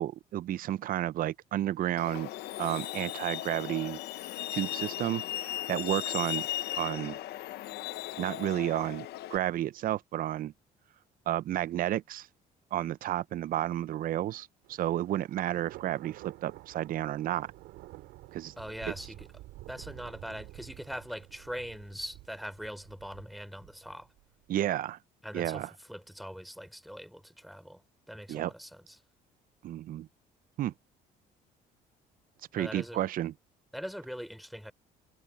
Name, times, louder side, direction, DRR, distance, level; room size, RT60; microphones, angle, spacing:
voice 1, 0.0-2.3 2.6-4.0 4.5-6.5 6.8-7.2 8.2-10.5 11.3-12.3 12.7-17.5 18.3-18.5 24.5-25.0 25.3-25.7 28.3-28.5 29.6-30.1 30.6-30.7 32.5-33.3, right 13 dB, 55° right, 0.6 m, -31 dB
Truck, 2.0-9.4, left 14 dB, 75° left, 1.0 m, -37 dB
Thunder, 14.6-24.5, right 18 dB, 90° right, 4.1 m, -50 dB
voice 2, 18.6-19.3 19.7-24.1 25.2-29.0 32.5-33.0 33.7-34.7, equal, ahead, 4.1 m, -42 dB
cardioid pair, 110°, 17 cm